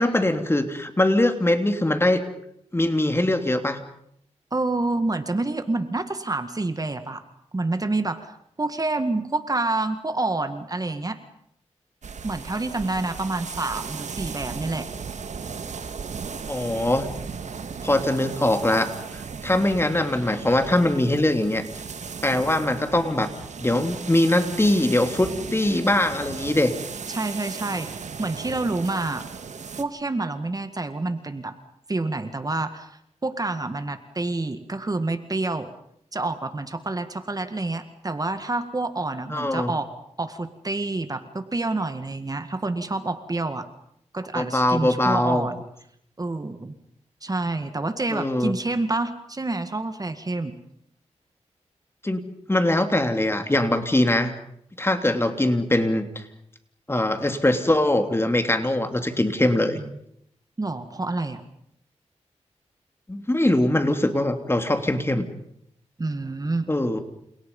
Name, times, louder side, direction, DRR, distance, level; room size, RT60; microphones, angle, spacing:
voice 1, 0.0-2.2 2.7-3.8 16.5-17.1 17.8-21.7 22.2-23.3 23.6-26.7 39.3-39.7 44.3-45.5 48.1-48.5 52.0-52.2 52.5-54.3 54.8-56.3 56.9-59.8 63.1-65.3 66.7-67.0, left 1 dB, 20° left, 7 dB, 3.0 m, -22 dB
voice 2, 4.5-7.2 7.5-11.2 12.2-14.9 27.1-27.9 28.2-29.2 29.8-31.6 31.9-35.7 36.1-39.9 40.2-43.7 44.1-45.6 46.2-46.7 47.2-50.5 59.7-59.9 60.6-61.4 66.0-66.7, right 2 dB, 30° right, 9 dB, 1.9 m, -28 dB
sound 1, 12.0-29.8, right 5 dB, 75° right, 1.9 m, -36 dB
29.5 x 28.5 x 5.5 m, 0.73 s
cardioid pair, 75°, 12 cm